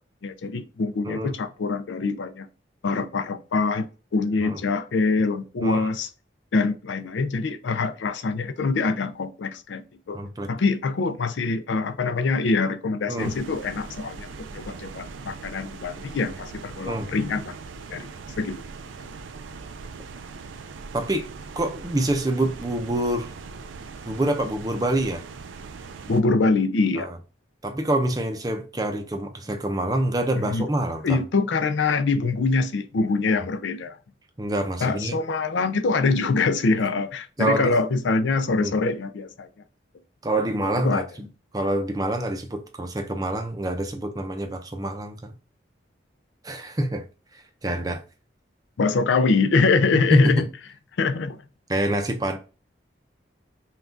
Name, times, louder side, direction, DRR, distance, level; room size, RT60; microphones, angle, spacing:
voice 1, 0.2-2.5 2.8-6.1 6.5-10.2 10.5-17.5 17.9-18.1 18.4-18.6 26.1-27.1 30.4-30.7 31.0-34.0 34.8-39.5 40.8-41.0 48.8-50.5 51.0-51.4, left 4 dB, 75° left, 0.4 m, -24 dB
voice 2, 10.1-10.5 13.1-13.3 16.8-17.1 20.9-21.3 21.6-23.3 24.1-25.2 27.0-27.2 27.6-31.2 34.4-35.1 37.4-37.8 38.5-38.7 40.2-41.3 41.5-45.3 46.4-47.1 47.3-48.0 49.9-50.4 51.7-52.4, right 1 dB, 20° right, 0.5 m, -26 dB
sound 1, 13.2-26.2, right 4 dB, 85° right, 0.4 m, -40 dB
5.5 x 2.3 x 2.6 m
head